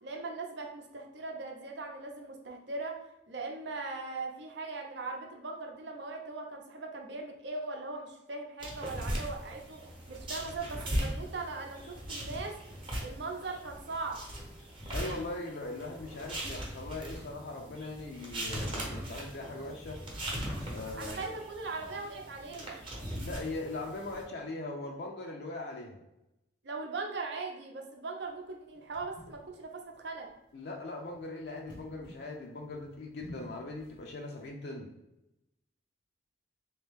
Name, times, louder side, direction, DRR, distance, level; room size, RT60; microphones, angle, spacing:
voice 1, 0.0-3.0 3.3-9.8 10.1-12.6 13.0-14.2 21.0-22.8 26.6-30.3, right 3 dB, 65° right, 2 dB, 0.7 m, -39 dB
sound 1, 8.6-24.2, equal, 30° right, 0.8 m, -39 dB
voice 2, 14.9-20.0 20.7-21.3 23.1-26.0 30.5-34.9, left 2 dB, 60° left, 0 dB, 0.5 m, -40 dB
sound 2, 28.2-34.5, equal, 85° left, 1.0 m, -53 dB
3.5 x 2.9 x 3.5 m, 0.89 s
head